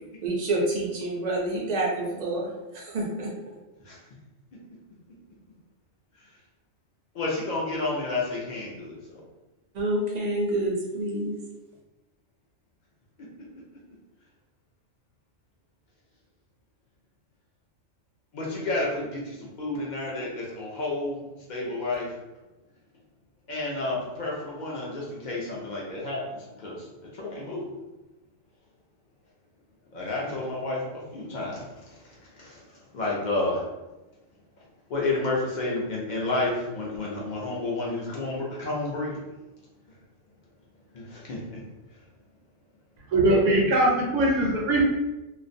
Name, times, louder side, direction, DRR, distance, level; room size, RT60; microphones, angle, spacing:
voice 1, 0.2-3.3 9.7-11.4, right 1 dB, 50° right, -2 dB, 0.5 m, -28 dB
voice 2, 7.1-9.2 18.3-21.2 21.5-22.1 23.5-27.6 29.9-32.0 32.4-32.6 32.9-33.6 34.9-39.2 40.9-41.6, left 2 dB, 55° left, -4 dB, 0.5 m, -30 dB
voice 3, 43.1-44.8, right 1 dB, 75° right, -3 dB, 0.9 m, -21 dB
2.4 x 2.0 x 2.5 m, 1.0 s
omnidirectional pair, 1.3 m